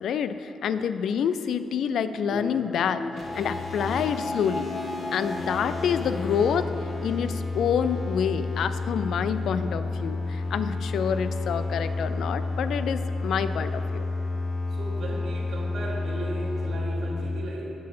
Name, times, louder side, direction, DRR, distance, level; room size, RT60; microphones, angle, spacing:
voice 1, 0.0-3.0 3.3-4.7 5.1-6.7 7.0-14.1, left 7 dB, 75° left, 12 dB, 0.4 m, -27 dB
sound 1, 2.3-8.2 8.5-8.6, left 2 dB, 25° left, 0.6 m, -37 dB
sound 2, 3.2-17.3, left 3 dB, 60° left, 2.3 m, -31 dB
voice 2, 14.7-17.7, right 1 dB, 75° right, -6 dB, 2.1 m, -36 dB
10.0 x 6.6 x 5.6 m, 2.7 s
cardioid pair, 75°, 0 cm